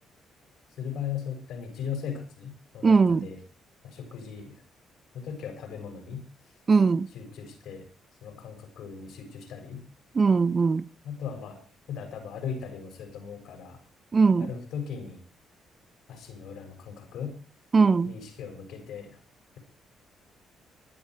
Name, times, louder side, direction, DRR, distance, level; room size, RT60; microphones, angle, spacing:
voice 1, 0.8-3.4 3.8-4.6 5.1-6.2 7.1-7.8 8.2-9.9 11.0-11.6 11.9-13.8 14.4-15.2 16.1-17.4 18.1-19.2, left 7 dB, 80° left, 7.5 m, -38 dB
voice 2, 2.8-3.3 6.7-7.1 10.1-10.9 14.1-14.5 17.7-18.1, right 4 dB, 35° right, 0.7 m, -20 dB
20.5 x 11.5 x 5.0 m
cardioid pair, 90°, 0 cm